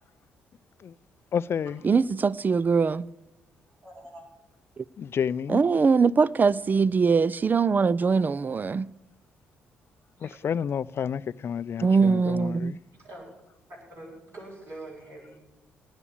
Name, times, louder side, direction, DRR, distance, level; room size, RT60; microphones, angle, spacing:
voice 1, 1.3-1.8 5.0-5.6 10.2-12.8, left 7 dB, 50° left, 0.5 m, -30 dB
voice 2, 1.8-3.0 5.5-8.9 11.8-12.8, right 5 dB, 35° right, 0.5 m, -22 dB
voice 3, 3.8-4.2 10.2-10.4 13.0-13.2 13.9-15.4, right 2 dB, 50° right, 7.6 m, -44 dB
18.0 x 7.3 x 8.4 m
hypercardioid pair, 45°, 5 cm